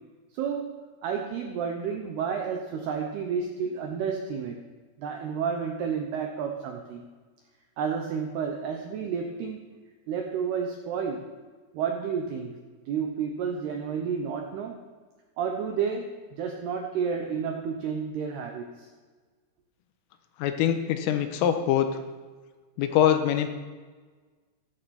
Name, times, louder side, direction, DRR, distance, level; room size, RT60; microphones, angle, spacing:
voice 1, 0.3-0.8 1.0-4.6 5.0-7.1 7.8-9.8 10.1-11.3 11.7-12.5 12.9-14.8 15.4-18.9, right 6 dB, 80° right, 3 dB, 2.3 m, -31 dB
voice 2, 20.4-22.0 22.8-23.5, left 10 dB, 80° left, 7 dB, 3.5 m, -23 dB
14.5 x 13.5 x 4.3 m, 1.4 s
omnidirectional pair, 6.0 m